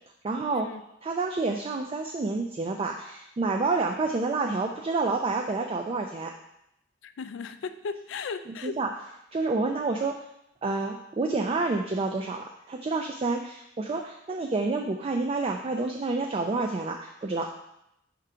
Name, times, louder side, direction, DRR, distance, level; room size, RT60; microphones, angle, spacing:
voice 1, 0.2-0.7 1.0-6.3 8.5-8.9 9.3-10.2 10.6-17.5, right 3 dB, 30° right, 3 dB, 0.4 m, -29 dB
voice 2, 7.0-8.8, left 5 dB, 75° left, 11 dB, 0.4 m, -36 dB
4.8 x 3.7 x 5.5 m, 0.81 s
head